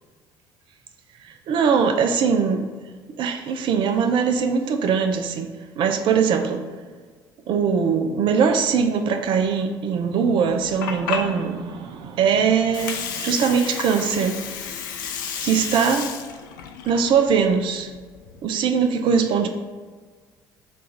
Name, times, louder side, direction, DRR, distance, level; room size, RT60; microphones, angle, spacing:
voice 1, 1.2-2.7 3.2-6.7 7.5-14.4 15.4-16.1 16.9-17.9 18.4-19.5, right 6 dB, 50° right, 0.4 m, -21 dB
Water, 10.5-18.4, left 7 dB, 75° left, 0.4 m, -32 dB
3.7 x 2.4 x 4.4 m
figure-of-eight pair, 55°, 11 cm